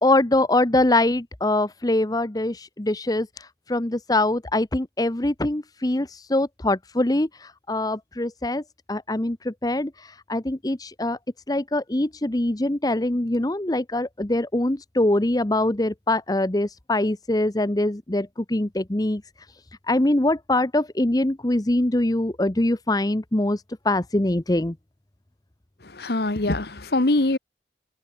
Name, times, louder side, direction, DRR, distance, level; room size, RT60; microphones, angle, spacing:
voice 1, 0.0-3.3 3.7-7.3 7.7-8.6 8.9-9.9 10.3-11.2 11.5-19.2 19.9-23.6 23.8-24.7, left 1 dB, 20° left, 0.9 m, -23 dB
voice 2, 25.8-27.4, left 2 dB, 60° left, 1.3 m, -23 dB
head